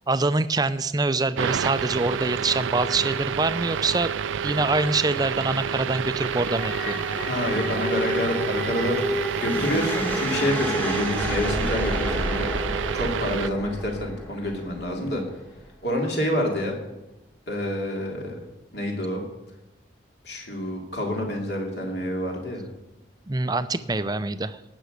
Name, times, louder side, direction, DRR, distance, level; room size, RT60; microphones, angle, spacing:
voice 1, 0.1-4.1 4.4-7.0 23.3-24.6, right 3 dB, 20° right, 13 dB, 0.5 m, -25 dB
sound 1, 1.4-13.5, right 7 dB, 85° right, 0.4 m, -29 dB
sound 2, 6.1-15.2, equal, 10° left, 1.5 m, -30 dB
voice 2, 7.3-9.0 9.4-12.6 12.9-15.2 15.8-16.8 17.5-18.3 18.7-19.2 20.2-22.6, left 1 dB, 55° left, 0 dB, 3.0 m, -28 dB
18.5 x 6.2 x 8.2 m, 1.0 s
head